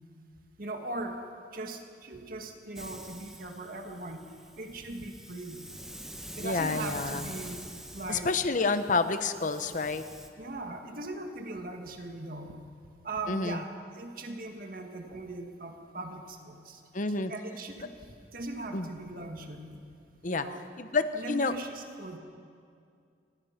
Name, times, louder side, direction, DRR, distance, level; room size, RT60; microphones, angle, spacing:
voice 1, 0.6-1.3 1.5-4.3 4.6-5.7 6.4-7.7 7.9-8.3 10.4-12.6 13.0-13.7 13.9-16.8 17.3-19.8 20.3-20.6 21.1-22.2, right 2 dB, 55° right, 4 dB, 1.9 m, -39 dB
Hiss, 2.8-10.3, equal, 5° right, 1.4 m, -45 dB
voice 2, 6.4-7.3 8.1-10.0 13.3-13.6 16.9-17.3 18.7-18.9 20.2-20.4 20.8-21.5, left 3 dB, 45° left, 10 dB, 1.0 m, -29 dB
26.0 x 20.0 x 5.9 m, 2.4 s
head